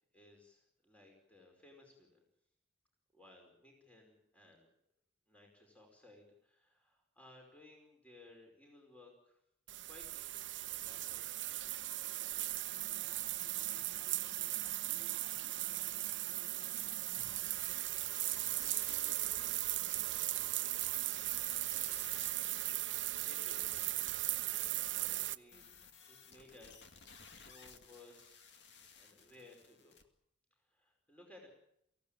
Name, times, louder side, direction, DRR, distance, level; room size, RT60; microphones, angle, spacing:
voice 1, 0.0-2.3 3.1-4.7 5.3-9.4 9.9-10.3 10.6-11.3 23.1-23.6 24.4-25.7 26.1-28.5 29.0-30.0 30.5-31.5, left 2 dB, 10° left, 1 dB, 5.0 m, -60 dB
sound 1, 9.7-25.4, right 15 dB, 90° right, 0.8 m, -38 dB
voice 2, 13.6-17.8 18.3-20.4 20.9-21.3, equal, 40° left, 3 dB, 6.5 m, -64 dB
sound 2, 18.6-24.1 25.5-30.0, left 5 dB, 70° left, 2.2 m, -57 dB
24.0 x 16.0 x 9.1 m, 0.75 s
head